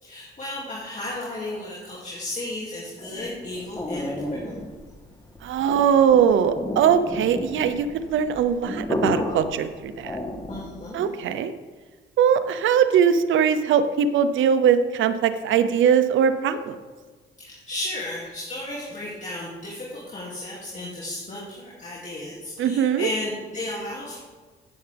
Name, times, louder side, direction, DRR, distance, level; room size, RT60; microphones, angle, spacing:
voice 1, 0.0-4.6 10.5-11.1 17.4-24.2, left 1 dB, 35° left, -5 dB, 2.6 m, -34 dB
sound 1, 3.0-10.8, left 1 dB, 20° left, 1.5 m, -32 dB
voice 2, 5.4-10.2 10.9-11.5 12.2-16.8 22.6-23.1, right 8 dB, 75° right, 11 dB, 0.8 m, -21 dB
16.0 x 7.1 x 3.5 m, 1.4 s
cardioid pair, 90°, 20 cm